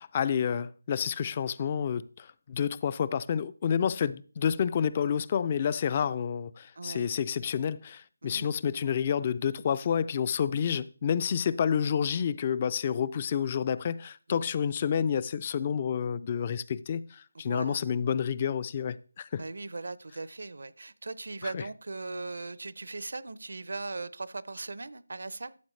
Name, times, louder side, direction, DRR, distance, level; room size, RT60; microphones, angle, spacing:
voice 1, 0.0-19.4 21.4-21.6, left 7 dB, 30° left, 0.4 m, -29 dB
voice 2, 6.8-7.1 8.2-8.5 14.3-14.4 17.3-17.8 19.4-25.6, right 3 dB, 65° right, 0.6 m, -39 dB
13.5 x 7.3 x 3.2 m
figure-of-eight pair, 165°, 0 cm